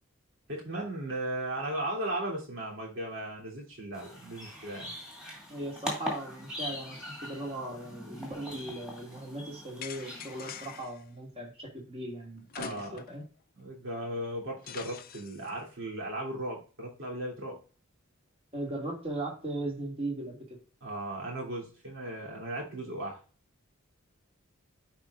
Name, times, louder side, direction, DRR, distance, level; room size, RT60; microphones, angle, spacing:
voice 1, 0.5-4.9 12.6-13.0 13.5-17.6 20.8-23.2, right 1 dB, 60° right, -2 dB, 2.8 m, -36 dB
sound 1, 3.9-10.8, left 1 dB, 5° right, 2.3 m, -41 dB
voice 2, 5.5-13.2 18.5-20.6, right 1 dB, 30° right, -1 dB, 2.1 m, -38 dB
sound 2, 9.8-11.0 12.5-13.2 13.6-13.7 14.7-15.5, left 8 dB, 40° left, 0.5 m, -44 dB
10.5 x 4.5 x 2.4 m, 0.36 s
head